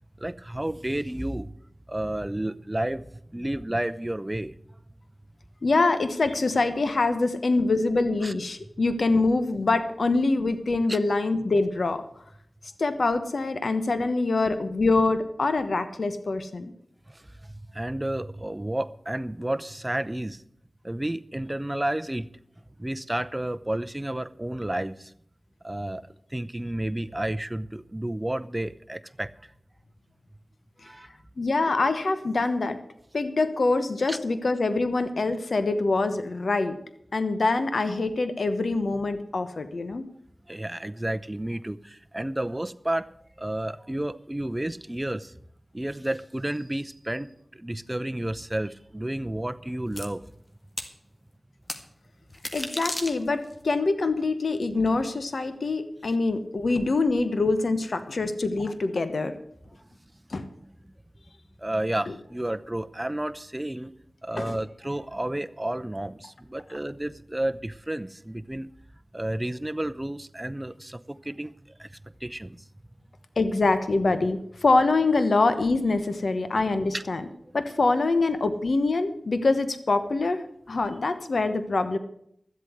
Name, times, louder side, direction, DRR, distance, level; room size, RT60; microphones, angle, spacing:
voice 1, 0.2-1.5 1.9-3.1 3.3-4.5 8.2-8.3 10.9-11.0 17.7-20.4 20.8-22.3 22.8-25.1 25.6-26.0 26.3-29.3 30.8-31.1 34.1-34.2 40.5-43.1 43.4-45.3 45.7-47.3 47.6-50.2 61.6-63.9 64.2-68.7 69.1-71.5 71.8-71.9 72.2-72.6 76.9-77.0, right 1 dB, 20° right, 12 dB, 0.7 m, -31 dB
voice 2, 5.6-12.0 12.8-16.7 31.4-32.8 33.1-36.8 37.1-40.0 52.5-59.3 60.3-60.4 62.1-62.2 64.4-64.6 73.4-77.2 77.5-82.0, left 3 dB, 75° left, 10 dB, 1.0 m, -25 dB
sound 1, 50.0-50.1 50.8-50.9 51.7-51.8 52.3-53.5, left 1 dB, 40° left, 1.8 m, -33 dB
13.0 x 8.0 x 7.9 m, 0.71 s
cardioid pair, 45°, 0 cm